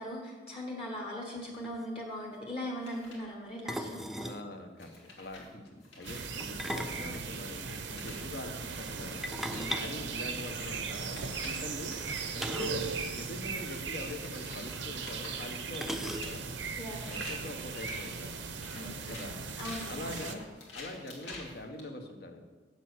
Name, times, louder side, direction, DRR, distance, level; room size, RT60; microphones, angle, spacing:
voice 1, 0.0-4.0 9.5-9.8 16.8-17.4 18.7-19.2 19.6-20.3, equal, 30° left, -1 dB, 1.2 m, -40 dB
sound 1, 1.4-1.5 1.6-1.9 3.7-4.5 6.4-7.8 9.2-10.9 12.4-12.9 13.1-13.2 13.6-13.7 14.7-14.8 15.7-16.6, equal, ahead, 0.4 m, -38 dB
sound 2, 2.8-3.2 3.8-4.2 4.8-6.3 7.7-8.6 9.1-9.2 9.4-12.3 12.9-13.1 14.0-21.8, left 2 dB, 85° left, 2.0 m, -49 dB
voice 2, 4.2-9.2 9.7-12.0 12.3-16.4 17.0-18.3 18.8-19.4 19.9-20.5 20.7-22.4, left 2 dB, 60° left, 4 dB, 1.1 m, -43 dB
sound 3, 6.0-20.3, right 5 dB, 85° right, 0.8 m, -38 dB
8.1 x 7.2 x 6.2 m, 1.3 s
head